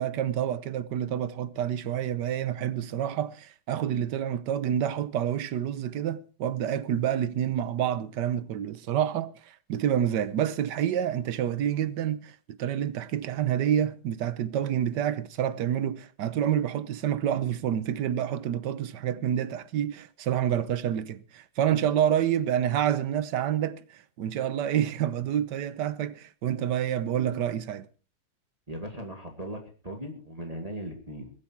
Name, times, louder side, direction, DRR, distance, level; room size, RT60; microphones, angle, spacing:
voice 1, 0.0-27.9, right 10 dB, 70° right, 1.5 m, -28 dB
voice 2, 28.7-31.3, right 1 dB, 20° right, 2.3 m, -38 dB
23.0 x 8.6 x 4.7 m
omnidirectional pair, 2.0 m